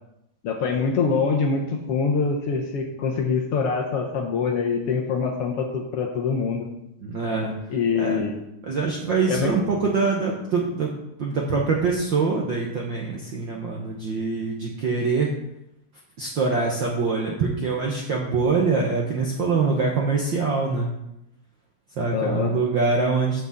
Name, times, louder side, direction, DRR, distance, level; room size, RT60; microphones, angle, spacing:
voice 1, 0.4-6.7 7.7-8.4 9.3-9.5 22.1-22.5, left 5 dB, 65° left, 0 dB, 1.6 m, -24 dB
voice 2, 7.0-7.5 7.9-8.2 8.7-10.9 11.2-15.3 16.2-20.9 22.0-23.5, right 4 dB, 65° right, -1 dB, 1.2 m, -24 dB
6.9 x 6.0 x 7.3 m, 0.86 s
omnidirectional pair, 3.4 m